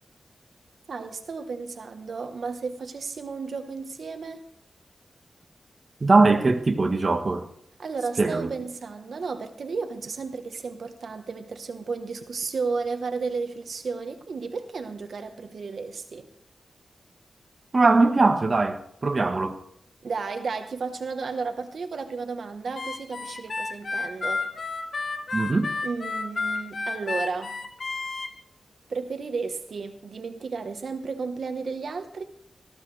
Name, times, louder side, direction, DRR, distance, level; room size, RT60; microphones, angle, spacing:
voice 1, 0.9-4.4 7.8-16.3 20.0-24.5 25.8-27.6 28.9-32.2, right 4 dB, 70° right, 1.2 m, -33 dB
voice 2, 6.0-7.5 8.2-8.5 17.7-19.6 25.3-25.7, right 3 dB, 40° right, 1.2 m, -21 dB
Harmonica, 22.7-28.3, left 3 dB, 50° left, 1.4 m, -31 dB
19.0 x 14.0 x 3.3 m
wide cardioid pair, 115°, 0 cm